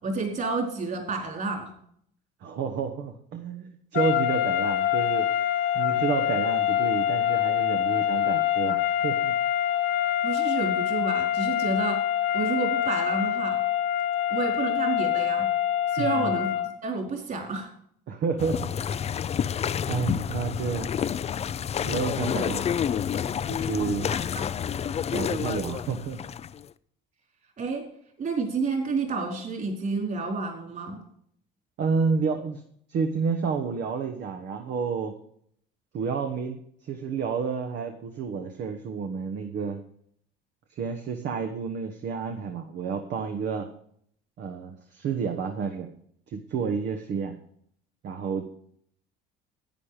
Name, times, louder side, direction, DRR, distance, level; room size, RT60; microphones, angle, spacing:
voice 1, 0.0-1.7 10.2-12.0 12.3-13.6 14.3-15.5 15.9-16.5 16.8-17.7 24.3-24.6 27.6-27.8 28.2-31.0, right 4 dB, 40° right, 2 dB, 4.4 m, -30 dB
voice 2, 2.4-5.3 5.7-9.3 16.0-16.4 18.1-18.6 19.9-20.9 21.8-22.7 23.5-24.1 25.1-26.2 31.8-32.6 32.9-35.1 35.9-39.8 40.7-43.7 44.4-45.9 46.3-47.4 48.0-48.4, right 5 dB, 60° right, 5 dB, 1.3 m, -30 dB
sound 1, 3.9-16.8, left 11 dB, 75° left, 1.2 m, -25 dB
sound 2, 18.4-26.6, left 8 dB, 30° left, 0.5 m, -29 dB
10.5 x 9.1 x 5.0 m, 0.65 s
cardioid pair, 100°, 21 cm